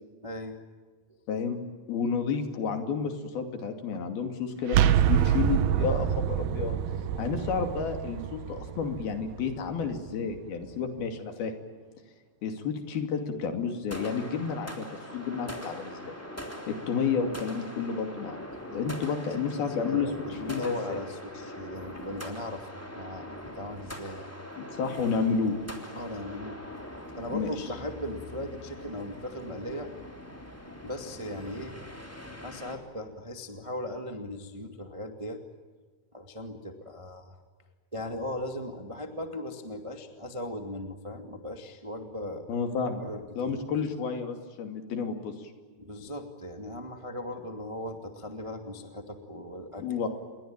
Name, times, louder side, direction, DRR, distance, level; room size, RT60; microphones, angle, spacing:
voice 1, 0.2-0.6 19.3-24.3 25.9-26.6 27.2-29.9 30.8-31.7 32.4-35.4 36.1-37.4 37.9-42.5 43.0-43.6 45.8-50.0, left 1 dB, 20° right, 5 dB, 0.8 m, -38 dB
voice 2, 1.3-1.6 1.9-6.8 7.2-11.5 12.4-14.9 15.1-16.1 16.7-18.4 18.7-21.0 24.6-25.6 27.3-27.7 42.5-43.0 43.3-45.5 49.8-50.1, left 5 dB, 70° left, 6 dB, 4.4 m, -31 dB
sound 1, 4.7-10.4, right 10 dB, 75° right, 2.8 m, -27 dB
sound 2, 13.9-32.8, equal, 5° left, 2.6 m, -42 dB
28.5 x 22.5 x 8.9 m, 1.4 s
omnidirectional pair, 4.6 m